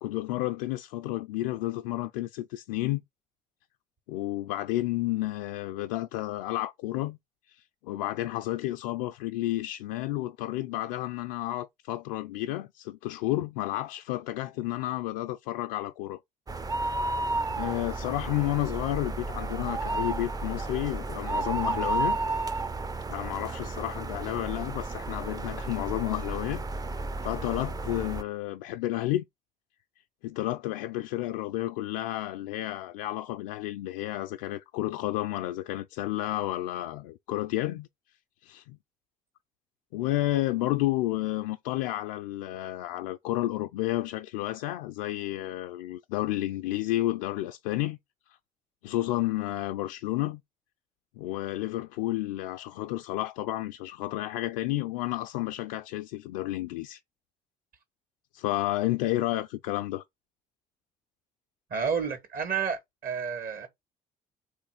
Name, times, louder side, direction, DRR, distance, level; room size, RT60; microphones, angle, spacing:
voice 1, 0.0-3.0 4.1-7.2 7.5-16.2 16.8-17.0 17.5-22.2 23.1-26.6 27.2-29.2 30.2-37.9 38.4-38.8 39.9-48.0 48.8-50.4 51.2-57.0 58.3-60.0, left 15 dB, 85° left, 0.4 m, -31 dB
sound 1, 16.5-28.2, right 3 dB, 20° right, 0.5 m, -32 dB
voice 2, 61.7-63.7, right 6 dB, 55° right, 1.8 m, -30 dB
3.4 x 3.1 x 4.8 m
hypercardioid pair, 60°, 18 cm